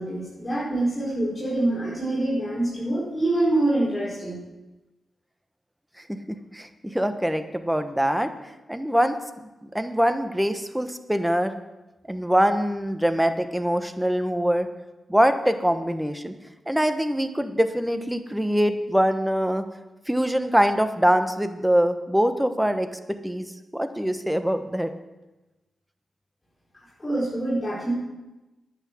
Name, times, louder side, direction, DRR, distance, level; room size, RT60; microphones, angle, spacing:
voice 1, 0.0-4.4 27.0-27.9, right 1 dB, 25° left, -8 dB, 5.0 m, -25 dB
voice 2, 6.1-8.3 8.7-9.2 9.6-11.5 12.1-14.7 15.1-16.3 16.7-19.6 20.1-23.5 23.7-24.9, equal, 5° right, 9 dB, 1.2 m, -23 dB
10.5 x 8.4 x 7.7 m, 1.1 s
supercardioid pair, 40°, 0 cm